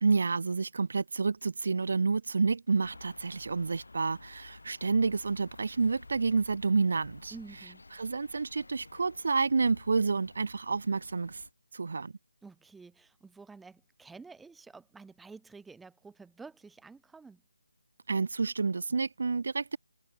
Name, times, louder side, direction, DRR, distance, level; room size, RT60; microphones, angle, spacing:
voice 1, 0.0-7.3 7.9-11.4 11.7-12.1 18.1-19.8, right 4 dB, 55° right, 0.3 m, -29 dB
sound 1, 2.8-11.5, left 2 dB, 70° left, 3.0 m, -53 dB
voice 2, 7.3-7.8 12.4-17.4, right 4 dB, 5° right, 3.8 m, -50 dB
figure-of-eight pair, 150°, 0 cm